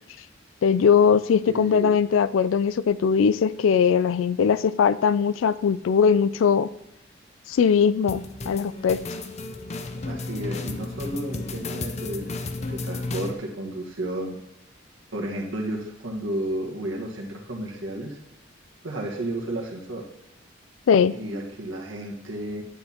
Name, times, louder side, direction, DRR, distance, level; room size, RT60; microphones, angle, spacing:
voice 1, 0.6-6.7 7.5-9.0 20.9-21.2, left 6 dB, 85° left, 17 dB, 0.3 m, -20 dB
voice 2, 1.5-2.0 10.0-12.3 12.7-14.4 15.1-18.2 18.8-20.0 21.1-22.6, right 1 dB, 75° right, 0 dB, 1.5 m, -32 dB
sound 1, 8.1-13.3, left 2 dB, 35° left, 0.5 m, -33 dB
10.0 x 8.4 x 2.9 m, 0.89 s
head